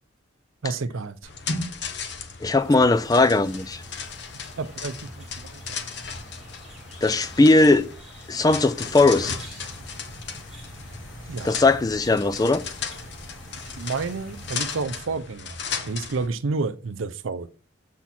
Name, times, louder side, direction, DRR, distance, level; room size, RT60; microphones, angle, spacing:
voice 1, 0.6-1.2 4.6-5.8 11.3-11.6 13.8-15.6 15.8-17.5, right 4 dB, 75° right, 0.6 m, -30 dB
sound 1, 1.2-16.3, left 5 dB, 55° left, 0.9 m, -36 dB
voice 2, 2.4-3.8 7.0-7.9 8.3-9.3 11.4-12.6, left 2 dB, 20° left, 0.3 m, -19 dB
sound 2, 2.6-14.8, right 1 dB, ahead, 2.0 m, -49 dB
sound 3, 8.8-14.6, equal, 80° left, 3.1 m, -45 dB
7.3 x 4.2 x 5.8 m
head